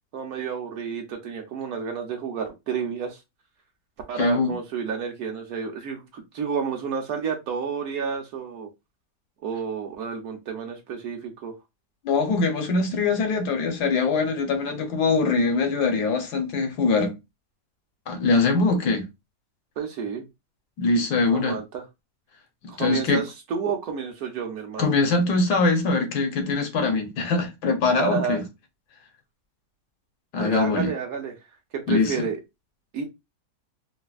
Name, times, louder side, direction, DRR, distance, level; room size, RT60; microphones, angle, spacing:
voice 1, 0.1-3.2 4.1-8.7 9.4-11.5 19.8-20.2 21.3-21.8 22.7-24.9 27.9-28.4 30.4-31.4 31.7-32.4 32.9-33.0, right 6 dB, 65° right, 1.1 m, -30 dB
voice 2, 4.2-4.5 12.0-17.1 18.1-19.0 20.8-21.6 22.8-23.2 24.8-28.4 30.3-30.9 31.9-32.1, left 3 dB, 75° left, 1.3 m, -22 dB
4.1 x 2.1 x 2.3 m
omnidirectional pair, 1.8 m